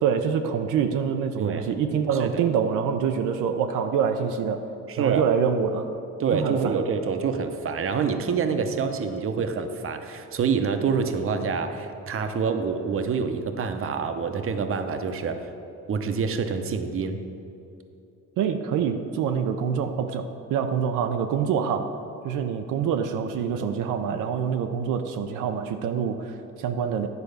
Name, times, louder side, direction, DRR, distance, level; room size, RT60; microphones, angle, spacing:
voice 1, 0.0-4.6 5.0-5.9 6.3-6.8 18.4-21.9 22.2-27.1, right 7 dB, 85° right, 6 dB, 0.6 m, -26 dB
voice 2, 4.9-5.2 6.2-15.5 15.9-17.2, right 5 dB, 45° right, 7 dB, 0.8 m, -26 dB
10.5 x 4.5 x 6.6 m, 2.8 s
cardioid pair, 90°, 30 cm